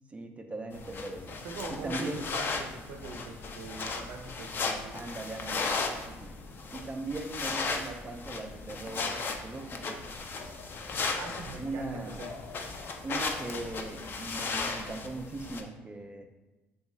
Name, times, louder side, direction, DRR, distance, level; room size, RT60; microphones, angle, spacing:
voice 1, 0.1-1.4 1.7-2.5 4.9-6.4 6.7-10.0 11.6-12.3 13.0-16.2, right 2 dB, 25° right, 4 dB, 0.4 m, -39 dB
sound 1, 0.7-15.6, left 4 dB, 45° left, 0.4 m, -36 dB
voice 2, 1.4-5.0 11.1-12.3, right 4 dB, 80° right, 3 dB, 0.5 m, -42 dB
2.9 x 2.3 x 3.9 m, 1.1 s
supercardioid pair, 75°, 5 cm